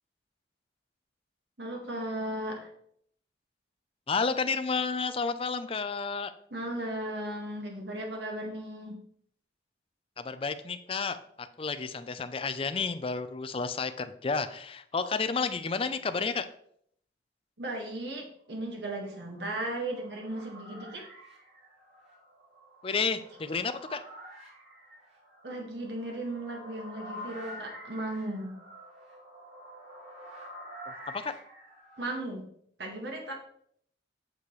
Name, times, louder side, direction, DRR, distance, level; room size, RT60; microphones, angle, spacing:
voice 1, 1.6-2.7 6.5-9.0 17.6-21.0 25.4-28.5 32.0-32.4 32.8-33.3, right 1 dB, 65° right, 0 dB, 1.8 m, -36 dB
voice 2, 4.1-6.3 10.2-16.5 22.8-24.0 31.1-31.3, left 4 dB, 30° left, 10 dB, 0.5 m, -31 dB
sound 1, 18.7-32.2, equal, 80° right, 2.5 m, -48 dB
8.3 x 6.4 x 3.2 m, 0.66 s
head